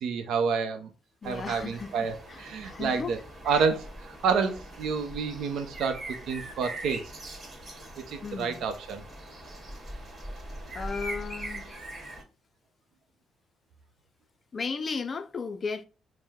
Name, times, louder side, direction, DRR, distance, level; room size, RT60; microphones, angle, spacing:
voice 1, 0.0-0.9 1.2-3.2 3.4-7.1 8.0-9.0, right 5 dB, 80° right, 0.6 m, -29 dB
voice 2, 1.2-3.1 3.4-3.7 8.2-8.7 10.7-11.7 14.5-15.8, left 5 dB, 40° left, 0.4 m, -35 dB
sound 1, 1.2-12.2, right 1 dB, 35° right, 1.5 m, -42 dB
4.4 x 2.1 x 3.6 m
cardioid pair, 90°, 0 cm